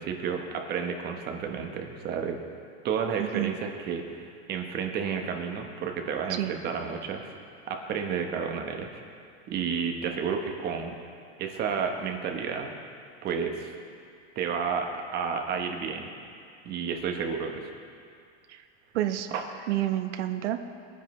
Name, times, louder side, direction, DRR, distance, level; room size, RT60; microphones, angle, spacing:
voice 1, 0.0-2.4 2.8-7.3 7.7-9.0 9.5-10.9 11.4-12.7 13.2-13.7 14.3-16.1 16.6-17.7 19.3-19.7, right 6 dB, 30° right, 3 dB, 1.1 m, -31 dB
voice 2, 3.1-3.5 6.3-6.5 18.5-18.6 18.9-19.3 19.7-20.8, right 13 dB, 75° right, 6 dB, 1.0 m, -29 dB
21.0 x 9.8 x 3.2 m, 2.3 s
supercardioid pair, 160°, 35 cm